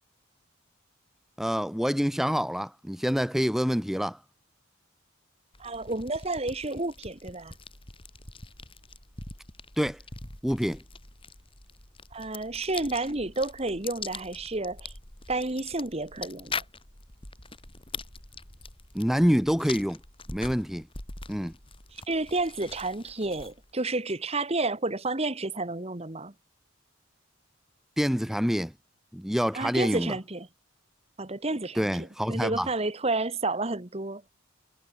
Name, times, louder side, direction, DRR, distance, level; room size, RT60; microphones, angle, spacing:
voice 1, 1.4-4.2 9.8-10.0 10.4-10.8 18.9-20.0 20.3-20.9 21.3-21.5 28.0-28.7 29.1-30.1 31.7-32.7, equal, ahead, 1.3 m, -26 dB
sound 1, 5.5-23.7, left 4 dB, 25° left, 5.3 m, -43 dB
voice 2, 5.6-7.5 12.1-14.9 15.3-16.6 22.1-26.3 29.5-30.5 31.2-34.2, right 2 dB, 30° right, 1.5 m, -30 dB
head